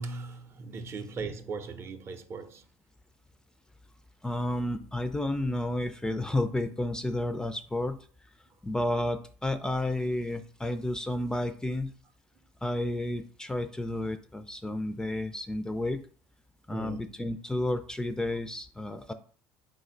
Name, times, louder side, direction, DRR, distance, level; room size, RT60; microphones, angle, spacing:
voice 1, 0.0-2.6 16.7-17.1, right 4 dB, 40° right, 0.6 m, -38 dB
voice 2, 4.2-8.0 8.6-11.9 12.6-16.0 16.7-19.1, left 1 dB, 10° left, 0.4 m, -31 dB
4.1 x 2.1 x 3.7 m
supercardioid pair, 85°, 7 cm